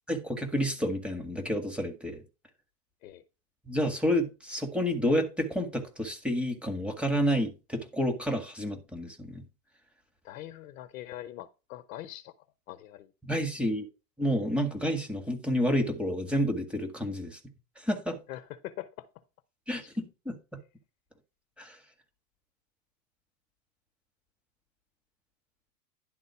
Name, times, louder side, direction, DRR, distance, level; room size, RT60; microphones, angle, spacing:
voice 1, 0.1-2.2 3.7-9.4 13.2-13.9 14.2-17.4 17.8-18.2 19.7-20.4 21.6-21.8, equal, ahead, 1.7 m, -29 dB
voice 2, 10.2-12.3 12.7-13.1 18.3-19.1, left 14 dB, 60° left, 1.0 m, -42 dB
11.0 x 4.0 x 5.8 m
hypercardioid pair, 125°, 46 cm